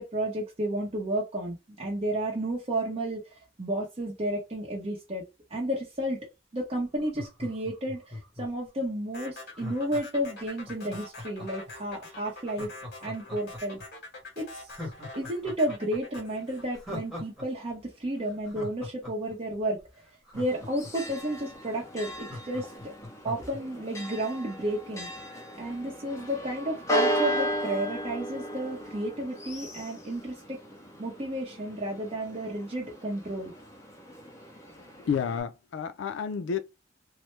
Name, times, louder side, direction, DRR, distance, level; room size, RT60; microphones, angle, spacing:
voice 1, 0.0-3.2 3.6-5.2 5.5-6.2 6.5-12.7 13.0-13.8 14.4-14.6 15.1-19.8 20.3-22.9 23.2-25.1 25.6-30.6 31.0-33.5, right 1 dB, 35° right, 0.7 m, -32 dB
Laughter, 7.0-8.7 9.5-11.7 12.4-13.8 14.2-14.3 14.7-17.5 17.7-17.8 18.2-21.1 21.5-21.6 21.8-23.6 24.0-24.1, left 1 dB, ahead, 1.1 m, -41 dB
sound 1, 9.1-17.5, left 2 dB, 60° left, 1.6 m, -44 dB
Church bell, 20.3-35.4, equal, 15° left, 0.7 m, -36 dB
voice 2, 35.0-36.6, left 6 dB, 75° left, 0.4 m, -30 dB
3.1 x 2.0 x 3.1 m
head